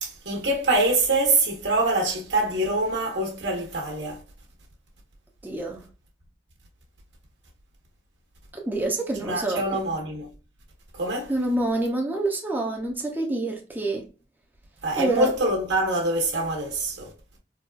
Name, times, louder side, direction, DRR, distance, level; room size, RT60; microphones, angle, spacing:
voice 1, 0.0-4.2 9.2-10.3 11.0-11.3 14.8-17.1, right 2 dB, 80° right, 1.2 m, -25 dB
voice 2, 5.4-5.8 8.5-9.8 11.3-14.1 15.0-15.3, right 2 dB, 10° right, 0.5 m, -27 dB
3.9 x 2.3 x 2.3 m
head